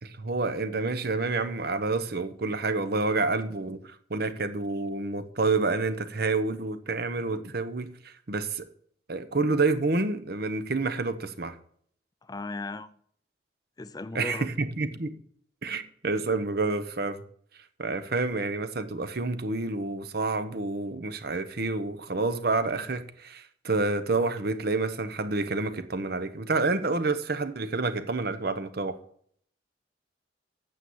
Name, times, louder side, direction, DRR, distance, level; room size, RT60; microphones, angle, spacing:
voice 1, 0.0-8.7 9.1-11.6 14.1-15.2 15.6-17.2 17.8-29.0, right 3 dB, 60° right, 1.0 m, -28 dB
voice 2, 12.2-13.0 13.8-14.5, left 2 dB, 20° left, 0.4 m, -36 dB
9.0 x 7.1 x 7.9 m
head